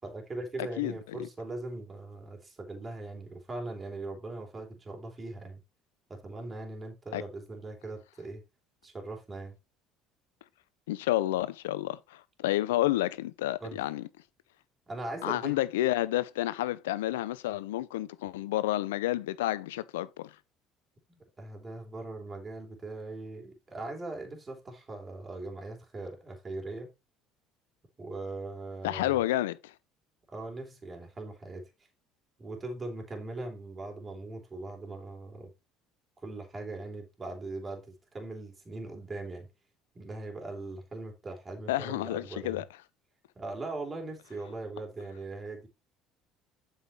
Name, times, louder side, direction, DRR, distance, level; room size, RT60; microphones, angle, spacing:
voice 1, 0.0-5.6 6.1-8.4 8.8-9.5 13.6-13.8 14.9-15.6 21.1-26.9 28.0-29.2 30.3-31.7 32.4-35.5 36.2-39.5 39.9-42.6 43.3-45.7, right 2 dB, 25° right, 3.4 m, -40 dB
voice 2, 0.8-1.3 7.1-7.2 10.9-14.1 15.2-20.3 28.8-29.7 41.7-42.6, left 15 dB, 90° left, 0.6 m, -30 dB
8.1 x 5.7 x 4.2 m
hypercardioid pair, 75°, 0 cm